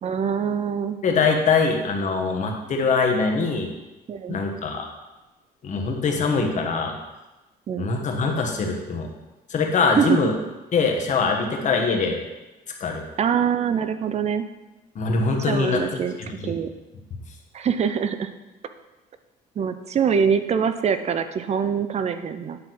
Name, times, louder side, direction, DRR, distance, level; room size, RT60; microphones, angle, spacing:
voice 1, 0.0-1.0 4.1-4.4 7.7-7.9 10.0-10.1 13.2-14.5 15.5-16.7 17.5-18.3 19.6-22.6, right 7 dB, 40° right, 10 dB, 0.6 m, -24 dB
voice 2, 1.0-3.7 4.3-4.9 5.6-6.9 7.8-9.1 9.5-10.3 10.7-12.2 12.8-13.0 14.9-16.0 16.4-16.6, left 4 dB, 45° left, 2 dB, 1.4 m, -23 dB
9.7 x 3.7 x 6.1 m, 1.1 s
cardioid pair, 110°, 17 cm